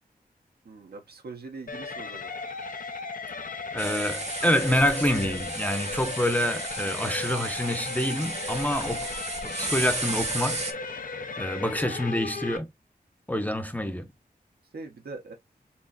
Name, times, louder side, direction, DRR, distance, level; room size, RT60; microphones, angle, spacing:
voice 1, 0.6-2.3 11.5-11.6 14.7-15.3, right 3 dB, 75° right, 1.2 m, -42 dB
sound 1, 1.7-12.6, left 4 dB, 55° left, 0.8 m, -36 dB
voice 2, 3.7-9.2 9.6-10.6 11.4-12.7 13.3-14.1, left 1 dB, 10° left, 0.8 m, -27 dB
sound 2, 3.8-10.7, right 3 dB, 45° right, 1.1 m, -34 dB
4.3 x 3.2 x 2.5 m
wide cardioid pair, 65°, 16 cm